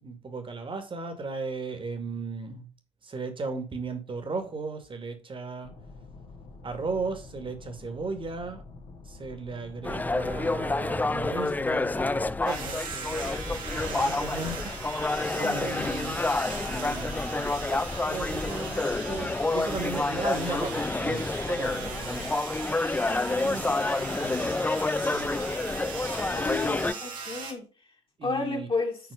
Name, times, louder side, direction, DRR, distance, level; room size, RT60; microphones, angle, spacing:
voice 1, 0.0-2.7 3.0-5.7 6.6-8.6 9.1-16.3 16.6-22.3 23.0-24.6 25.0-26.3 28.2-28.7, right 3 dB, 35° right, 2.2 m, -36 dB
sound 1, 5.6-21.6, left 3 dB, 55° left, 1.9 m, -47 dB
sound 2, 9.8-26.9, left 2 dB, 10° left, 0.4 m, -29 dB
sound 3, 12.5-27.5, right 5 dB, 60° right, 2.0 m, -39 dB
voice 2, 15.3-15.9 26.3-27.7 28.2-29.0, left 3 dB, 35° left, 2.3 m, -32 dB
9.4 x 4.4 x 5.0 m
figure-of-eight pair, 45°, 16 cm